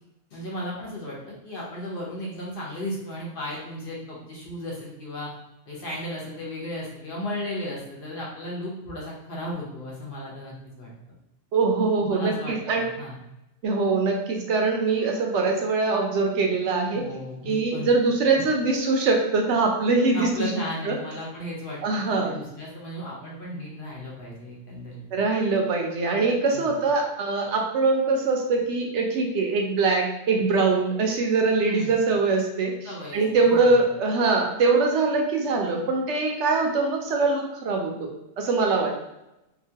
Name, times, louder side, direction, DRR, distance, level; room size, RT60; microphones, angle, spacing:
voice 1, 0.3-5.4 5.7-10.9 12.0-13.2 16.9-17.9 18.3-18.4 20.1-25.0 26.5-26.7 31.6-31.9 32.8-33.8, left 1 dB, 55° left, -5 dB, 0.9 m, -35 dB
voice 2, 11.5-12.8 13.6-17.0 17.5-20.5 20.9-21.0 21.8-22.3 25.1-32.7 33.1-38.1 38.4-38.9, right 3 dB, 80° right, 1 dB, 0.9 m, -23 dB
2.9 x 2.3 x 2.7 m, 0.89 s
omnidirectional pair, 1.2 m